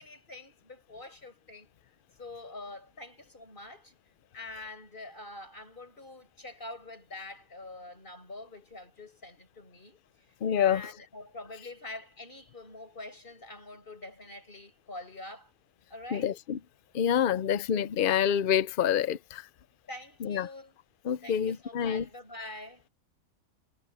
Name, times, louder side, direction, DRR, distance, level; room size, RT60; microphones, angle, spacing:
voice 1, 0.0-1.7 2.2-3.9 4.3-10.0 10.6-15.5 15.9-16.3 19.9-20.7 21.2-22.8, left 2 dB, 35° left, 6.0 m, -45 dB
voice 2, 10.4-10.8 16.1-16.6 16.9-19.5 20.2-20.5 21.0-22.0, left 9 dB, 60° left, 0.6 m, -27 dB
omnidirectional pair, 1.5 m